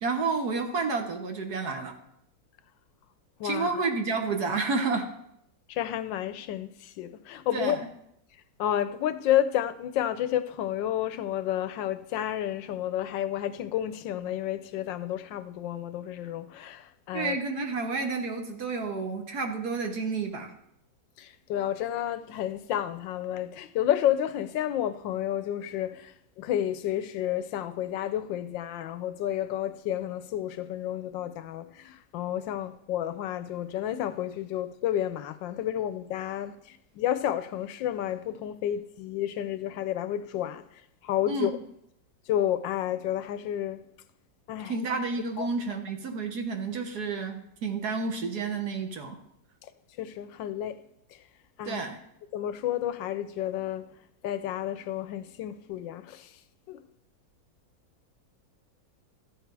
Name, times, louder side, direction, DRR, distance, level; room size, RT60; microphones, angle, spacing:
voice 1, 0.0-2.0 3.4-5.1 7.5-7.9 17.1-20.5 41.3-41.5 44.6-49.2 51.6-52.0, right 4 dB, 55° right, 1.6 m, -30 dB
voice 2, 3.4-3.8 5.7-7.8 8.6-17.4 21.2-26.1 26.4-36.5 37.0-40.6 41.0-41.5 42.3-43.8 44.5-44.7 45.4-45.5 50.0-50.8 51.6-51.8 52.3-53.9 54.2-56.3 56.7-56.8, left 11 dB, 75° left, 1.3 m, -30 dB
13.5 x 8.0 x 4.6 m
omnidirectional pair, 2.1 m